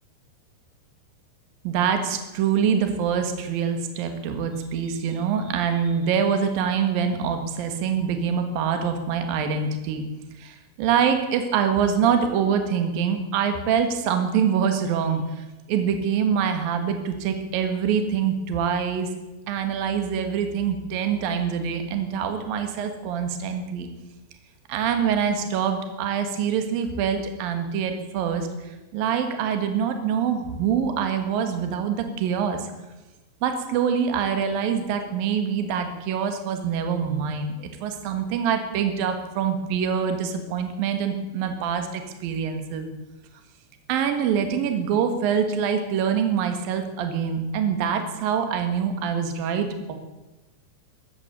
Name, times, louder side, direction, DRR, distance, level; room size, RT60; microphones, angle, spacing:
voice 1, 1.6-10.0 10.4-19.1 19.5-23.9 24.7-32.7 33.4-42.9 43.9-50.0, right 7 dB, 60° right, 7 dB, 3.0 m, -25 dB
14.0 x 12.0 x 8.1 m, 1.1 s
omnidirectional pair, 5.3 m